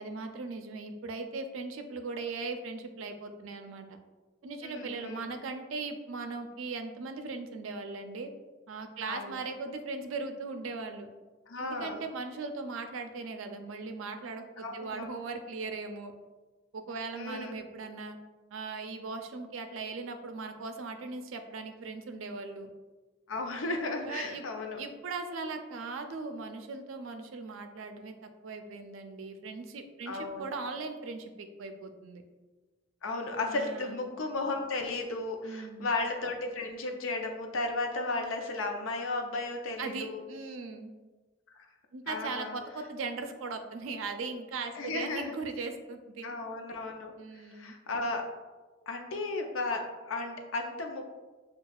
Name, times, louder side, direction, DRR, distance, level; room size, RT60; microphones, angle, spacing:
voice 1, 0.0-3.9 4.4-8.3 8.7-11.1 11.6-16.1 16.7-18.2 18.5-22.7 24.0-24.5 24.8-32.2 33.5-34.1 35.4-36.0 39.8-40.9 41.9-46.3 47.2-47.7, right 3 dB, 80° right, 7 dB, 0.4 m, -39 dB
voice 2, 4.6-5.3 9.1-9.4 11.5-12.0 14.6-15.1 17.1-17.6 23.3-24.8 30.1-30.5 33.0-40.2 41.5-41.7 42.1-42.6 44.7-45.3 46.2-48.3 48.9-51.1, left 2 dB, 80° left, 3 dB, 0.6 m, -34 dB
6.3 x 2.3 x 2.3 m, 1.3 s
head